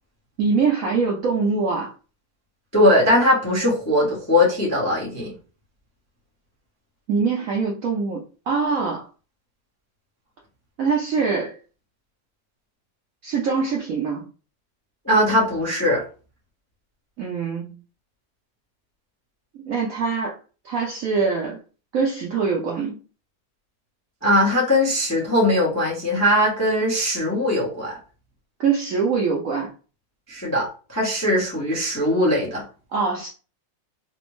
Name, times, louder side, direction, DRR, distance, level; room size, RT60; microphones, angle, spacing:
voice 1, 0.4-1.9 7.1-9.0 10.8-11.5 13.2-14.2 17.2-17.8 19.6-20.4 20.6-21.6 21.9-23.0 28.6-29.7 32.9-33.3, right 5 dB, 70° right, -2 dB, 0.8 m, -23 dB
voice 2, 2.7-5.3 15.0-16.0 24.2-27.9 30.3-32.6, left 1 dB, 20° left, -4 dB, 0.5 m, -20 dB
4.0 x 2.0 x 3.0 m, 0.36 s
omnidirectional pair, 2.0 m